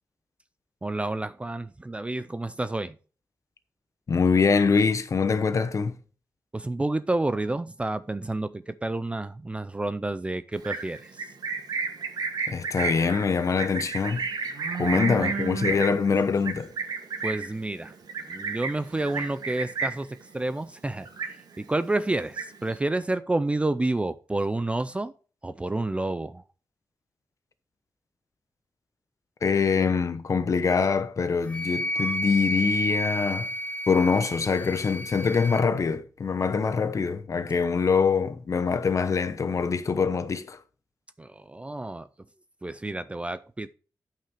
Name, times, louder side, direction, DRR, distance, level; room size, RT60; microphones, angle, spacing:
voice 1, 0.8-2.9 6.5-11.2 14.9-15.3 17.2-17.9 18.3-21.1 21.6-25.1 25.4-26.4 41.2-42.1 42.6-43.7, right 2 dB, 20° right, 0.4 m, -29 dB
voice 2, 4.1-6.0 12.5-14.3 14.8-16.7 29.4-33.5 33.9-40.6, left 5 dB, 50° left, 0.9 m, -24 dB
Livestock farm animals working animals, 10.5-20.1 20.5-20.8 21.0-21.7 22.1-22.8, right 5 dB, 85° right, 1.5 m, -32 dB
Wind instrument woodwind instrument, 31.5-35.6, equal, 20° left, 1.1 m, -31 dB
9.0 x 5.8 x 4.8 m
wide cardioid pair, 110°, 7 cm